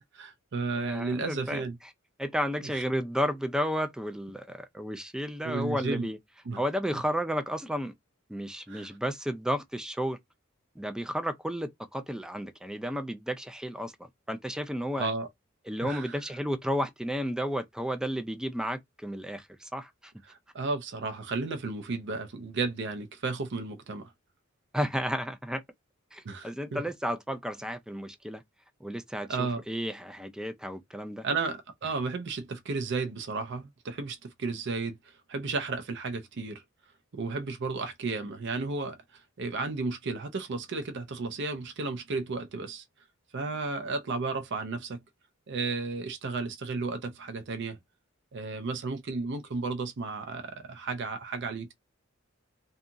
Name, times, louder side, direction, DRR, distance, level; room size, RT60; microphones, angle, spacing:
voice 1, 0.1-1.8 2.7-2.8 5.4-6.1 6.5-6.6 8.7-8.9 15.0-15.3 15.8-16.0 20.3-24.1 26.2-26.8 29.3-29.6 31.2-35.0 35.3-36.6 37.1-42.8 43.3-45.0 45.5-47.8 48.3-51.7, right 3 dB, 60° right, 0.5 m, -33 dB
voice 2, 0.7-1.9 2.2-6.2 6.6-7.9 8.3-10.2 10.8-15.1 15.7-20.1 24.7-25.6 26.1-28.4 28.8-31.3, equal, 5° right, 0.3 m, -32 dB
2.8 x 2.4 x 2.5 m
head